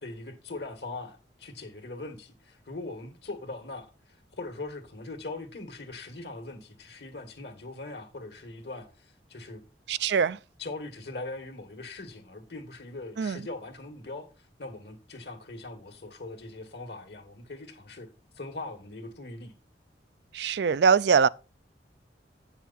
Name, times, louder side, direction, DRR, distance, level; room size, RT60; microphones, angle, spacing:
voice 1, 0.0-9.6 10.6-18.1 18.4-19.5, left 2 dB, 65° left, 1.9 m, -41 dB
voice 2, 9.9-10.4 13.2-13.4 20.3-21.3, right 6 dB, 70° right, 0.4 m, -22 dB
9.2 x 6.8 x 4.1 m
head